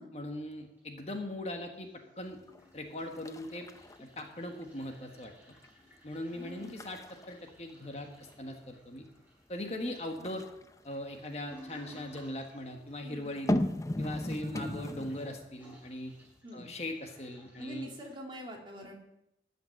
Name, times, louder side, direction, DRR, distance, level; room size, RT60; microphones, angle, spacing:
voice 1, 0.1-1.9 2.2-2.4 2.7-3.7 4.0-5.3 6.0-7.0 7.3-9.0 9.5-10.5 10.8-13.5 14.0-16.1 16.5-17.9, left 1 dB, 35° left, 4 dB, 1.3 m, -40 dB
Toilet flush, 0.5-1.4 1.7-18.1, equal, 10° right, 4.8 m, -59 dB
sound 1, 2.5-2.8 3.1-4.8 5.2-5.7 6.1-6.3 6.6-8.5 10.1-12.0 13.3-15.5 15.9-16.0, left 1 dB, 15° left, 0.5 m, -36 dB
voice 2, 6.3-6.7 10.2-10.3 13.0-13.4 14.4-15.0 16.4-16.7 17.6-19.0, equal, 25° right, 0 dB, 2.4 m, -45 dB
13.5 x 5.9 x 9.1 m, 0.82 s
head